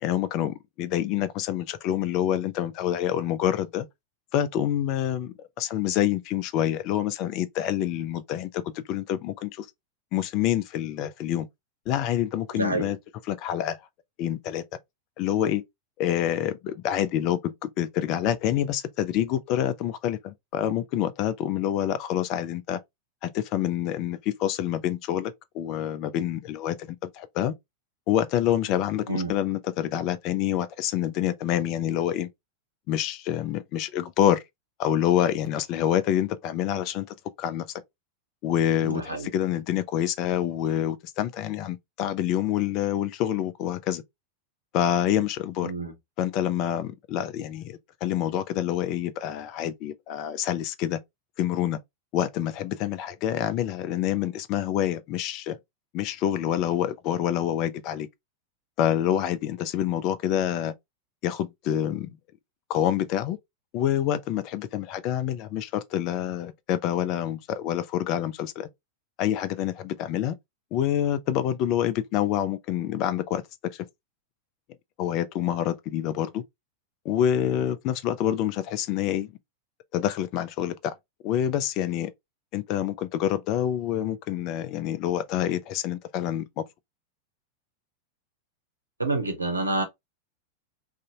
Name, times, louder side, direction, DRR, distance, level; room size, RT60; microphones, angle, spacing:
voice 1, 0.0-3.9 4.3-9.7 10.1-11.5 11.9-13.0 13.3-13.8 14.2-14.6 15.2-15.6 16.0-22.8 23.2-27.5 28.1-32.3 32.9-34.4 34.8-37.7 38.4-44.0 44.7-45.7 46.2-51.0 51.4-51.8 52.1-55.6 55.9-58.1 58.8-60.7 61.2-62.2 62.7-63.4 63.7-68.7 69.2-70.4 70.7-73.4 73.7-73.8 75.0-76.4 77.0-79.3 79.9-80.9 81.2-82.1 82.5-86.6, left 11 dB, 40° left, 0.4 m, -27 dB
voice 2, 12.5-12.9 29.1-29.3 38.8-39.3 45.6-45.9 89.0-89.8, right 2 dB, 80° right, 0.7 m, -28 dB
2.6 x 2.4 x 2.7 m
figure-of-eight pair, 90°, 0 cm